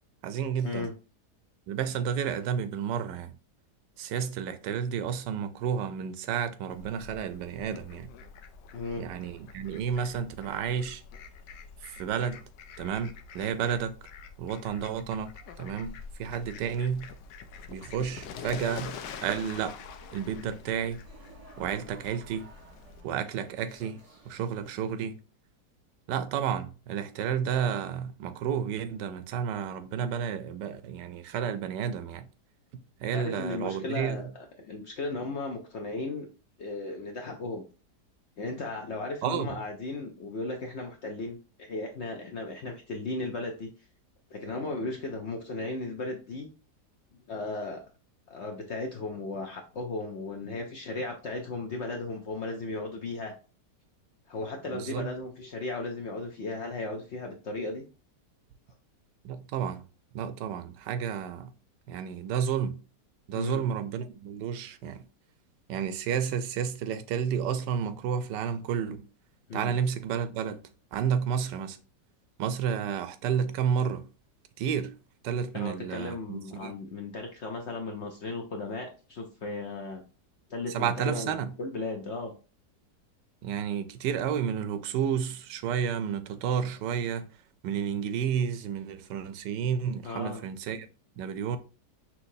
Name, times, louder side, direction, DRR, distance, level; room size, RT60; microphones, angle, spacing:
voice 1, 0.2-0.9 1.7-3.3 4.0-8.1 9.0-11.0 11.8-12.4 12.8-13.9 14.4-15.3 15.6-17.1 17.7-19.8 20.1-21.0 21.6-22.5 23.0-24.0 24.3-25.2 26.1-32.3 33.0-34.3 39.2-39.6 54.7-55.1 59.2-59.8 60.1-61.5 61.9-62.8 63.3-65.0 65.7-69.0 69.5-70.6 70.9-71.8 72.4-74.1 74.6-74.9 75.2-76.7 80.7-81.5 83.4-87.3 87.6-90.9 91.2-91.6, right 8 dB, 85° right, 1.2 m, -31 dB
Fowl, 6.7-23.0, left 6 dB, 85° left, 1.2 m, -46 dB
voice 2, 8.7-9.0 33.1-36.3 36.6-37.6 38.4-43.7 44.3-46.5 47.3-47.8 48.3-53.3 54.3-57.8 63.3-63.6 69.5-69.7 75.5-80.0 80.5-82.3 90.0-90.4, left 3 dB, 65° left, 0.7 m, -36 dB
sound 1, 19.0-24.9, right 3 dB, 30° right, 0.8 m, -55 dB
5.8 x 3.0 x 2.6 m
omnidirectional pair, 1.8 m